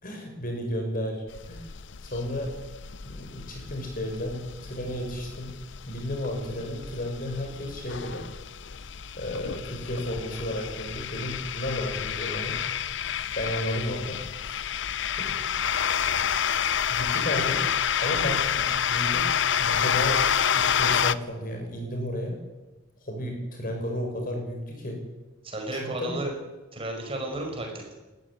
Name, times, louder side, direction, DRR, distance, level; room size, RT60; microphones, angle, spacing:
voice 1, 0.0-1.7 2.0-2.5 3.0-5.5 5.9-8.2 9.2-12.6 13.4-14.2 14.4-14.7 15.2-15.4 16.9-17.6 18.0-19.3 19.6-20.2 20.5-22.4 23.0-25.0 25.7-26.2, left 1 dB, 45° left, 3 dB, 5.9 m, -33 dB
sound 1, 1.3-21.1, left 8 dB, 60° left, 0.7 m, -29 dB
voice 2, 25.4-26.3 26.7-28.0, right 2 dB, 25° right, 2 dB, 5.4 m, -33 dB
20.0 x 14.5 x 9.9 m, 1.1 s
head